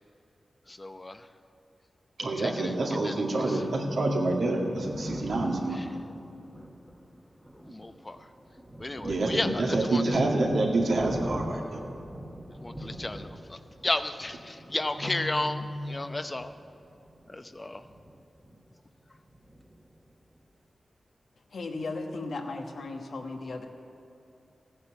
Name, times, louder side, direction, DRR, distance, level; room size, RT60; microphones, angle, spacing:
voice 1, 0.7-1.3 2.2-2.8 3.0-3.1 3.5-3.6 5.7-5.9 7.5-8.3 8.8-10.0 12.5-16.5 17.3-17.8, left 2 dB, 30° left, 9 dB, 0.8 m, -33 dB
voice 2, 2.2-5.8 9.0-11.8 15.0-16.0, right 2 dB, 75° right, -1 dB, 2.1 m, -27 dB
Thunder, 4.4-18.9 19.1-20.4, equal, 10° right, 1.4 m, -44 dB
voice 3, 21.5-23.7, left 3 dB, 80° left, 3 dB, 1.4 m, -36 dB
15.0 x 9.5 x 7.2 m, 2.6 s
cardioid pair, 60°, 0 cm